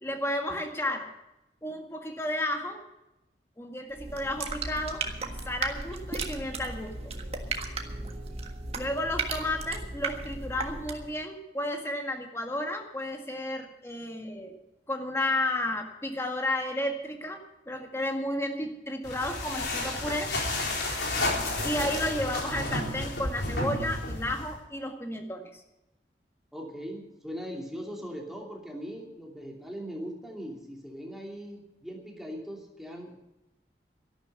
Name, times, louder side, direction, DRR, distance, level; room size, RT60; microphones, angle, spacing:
voice 1, 0.0-1.1 1.6-2.8 3.6-5.1 5.5-7.1 8.7-14.6 14.9-20.3 21.6-25.6, left 1 dB, 15° left, 3 dB, 1.8 m, -32 dB
sound 1, 3.9-11.2, right 3 dB, 35° right, 1.6 m, -35 dB
sound 2, 19.0-24.6, left 2 dB, 75° left, 3.9 m, -31 dB
voice 2, 26.5-33.1, equal, ahead, -1 dB, 2.8 m, -40 dB
13.0 x 12.0 x 6.9 m, 0.93 s
head